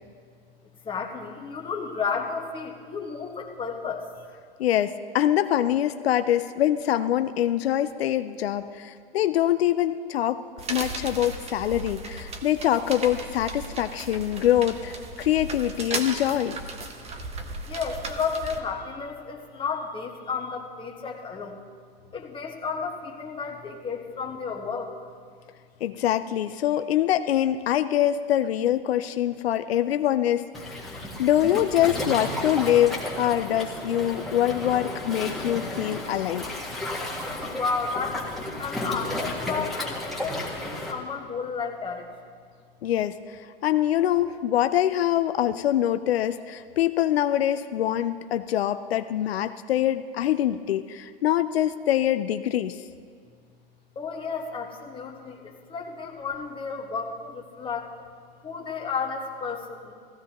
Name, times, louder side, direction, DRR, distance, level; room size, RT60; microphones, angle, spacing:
voice 1, 0.8-4.0 17.6-21.6 22.1-24.9 37.5-42.1 53.9-57.9 58.4-59.9, left 5 dB, 15° left, 1 dB, 1.4 m, -32 dB
voice 2, 4.6-10.4 10.7-16.6 25.8-30.9 31.2-36.5 42.8-52.8, left 11 dB, 85° left, 10 dB, 0.5 m, -24 dB
sound 1, 10.6-18.6, right 3 dB, 20° right, 1.0 m, -36 dB
Waves surf, 30.5-40.9, left 1 dB, ahead, 1.6 m, -33 dB
16.5 x 15.0 x 3.0 m, 2.1 s
hypercardioid pair, 120°, 30 cm